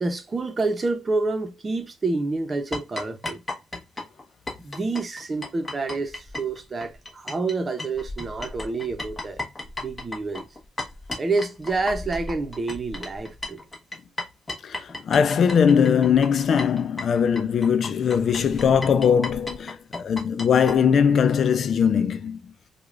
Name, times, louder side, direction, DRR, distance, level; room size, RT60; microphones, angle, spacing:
voice 1, 0.0-3.4 4.6-9.4 9.8-10.5 11.2-13.6, right 3 dB, 30° right, 0.8 m, -28 dB
Creepy Strings, 2.7-7.5 7.8-20.8, left 2 dB, 25° left, 1.2 m, -35 dB
voice 2, 14.6-22.4, left 7 dB, 55° left, 0.4 m, -20 dB
4.8 x 2.4 x 2.5 m
cardioid pair, 90°, 0 cm